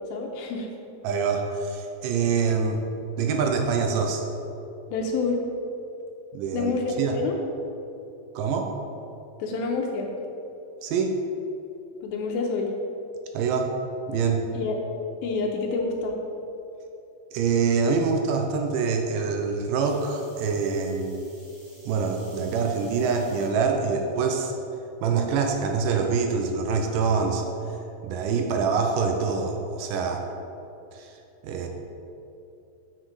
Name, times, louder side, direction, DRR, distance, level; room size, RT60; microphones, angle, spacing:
voice 1, 0.1-0.7 4.9-5.4 6.5-7.4 9.4-10.1 12.0-12.7 14.5-14.8 15.2-16.1, left 4 dB, 80° left, 1 dB, 2.5 m, -27 dB
voice 2, 1.0-2.8 3.2-4.2 6.3-6.7 7.0-7.2 8.4-8.7 10.8-11.2 13.3-13.7 14.1-14.4 17.3-21.2 21.9-24.5 25.0-27.4 28.0-30.2 30.9-31.1 31.4-31.7, right 5 dB, 80° right, 3 dB, 2.1 m, -25 dB
sound 1, 19.8-23.5 24.2-24.6 25.9-26.0, right 1 dB, 50° right, 0.6 m, -53 dB
7.8 x 6.5 x 4.8 m, 2.8 s
omnidirectional pair, 4.3 m